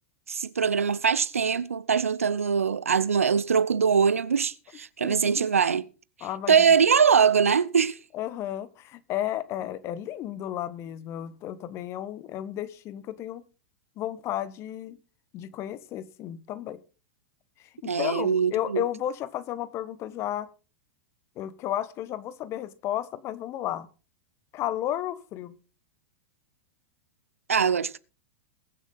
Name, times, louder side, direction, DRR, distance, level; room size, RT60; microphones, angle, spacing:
voice 1, 0.3-5.8 6.5-8.0 17.8-18.8 27.5-28.0, right 6 dB, 85° right, 0.6 m, -22 dB
voice 2, 5.0-5.5 6.2-6.6 8.1-13.4 14.0-15.0 15.3-16.8 17.8-20.5 21.4-23.9 24.5-25.5, left 12 dB, 40° left, 1.1 m, -33 dB
21.5 x 7.4 x 3.9 m
figure-of-eight pair, 95°, 7 cm